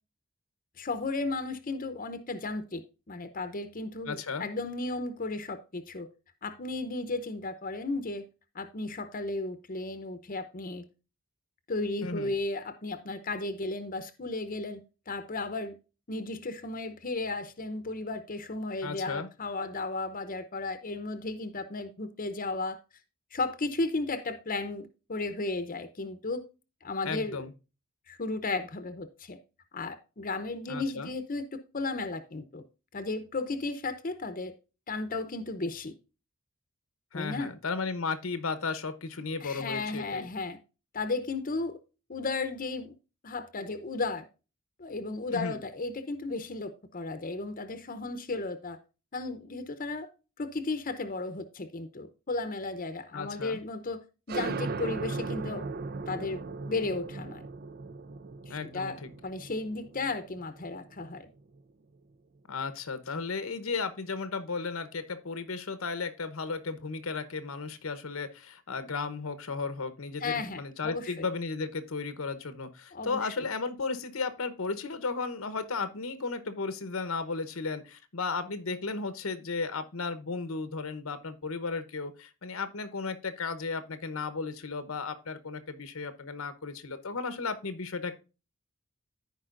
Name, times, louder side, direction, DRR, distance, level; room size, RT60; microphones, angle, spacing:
voice 1, 0.8-2.8 3.1-6.1 6.4-8.2 8.5-10.8 11.7-14.8 15.1-15.8 16.1-22.8 23.3-26.4 26.8-27.4 28.1-29.4 29.7-32.6 32.9-34.5 34.9-35.9 37.1-37.5 39.4-40.6 40.9-41.8 42.1-42.9 43.2-44.3 44.8-48.8 49.1-50.1 50.4-54.0 54.3-55.7 56.1-57.4 58.5-61.3 70.2-71.2 72.9-73.5, left 3 dB, 40° left, 10 dB, 0.8 m, -34 dB
voice 2, 4.1-4.4 12.0-12.3 18.8-19.3 27.0-27.5 30.7-31.1 37.1-40.3 45.3-45.6 53.1-53.6 58.5-59.1 62.5-88.1, left 4 dB, 80° left, 12 dB, 1.0 m, -34 dB
sound 1, 54.3-61.6, right 3 dB, 45° right, 0.5 m, -38 dB
14.5 x 4.9 x 2.5 m, 0.31 s
head